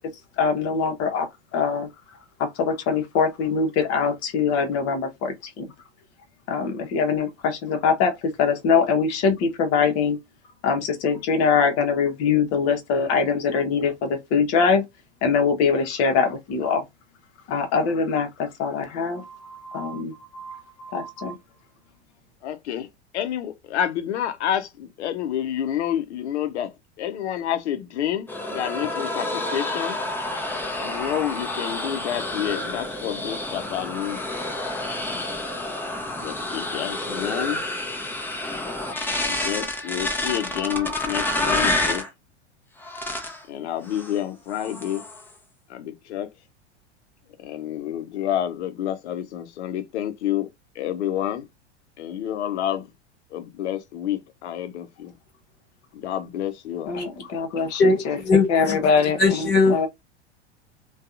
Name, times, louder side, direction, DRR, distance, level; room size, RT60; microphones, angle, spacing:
voice 1, 0.4-1.9 2.4-5.7 6.5-10.2 10.6-14.9 15.2-16.8 17.5-21.4 56.9-58.2 58.5-59.9, left 5 dB, 45° left, 0.9 m, -23 dB
voice 2, 22.4-22.9 23.1-30.0 30.8-34.2 36.2-37.6 39.2-42.1 43.5-45.1 45.7-46.3 47.4-50.5 50.8-51.4 52.0-52.9 53.3-54.9 55.9-56.9, left 11 dB, 75° left, 0.7 m, -29 dB
sound 1, 28.3-42.1 42.8-43.4 43.9-44.2 44.5-45.3, left 2 dB, 5° left, 0.7 m, -29 dB
voice 3, 57.8-58.8 59.2-59.8, left 3 dB, 30° left, 1.4 m, -19 dB
2.6 x 2.3 x 2.4 m
hypercardioid pair, 95°, 34 cm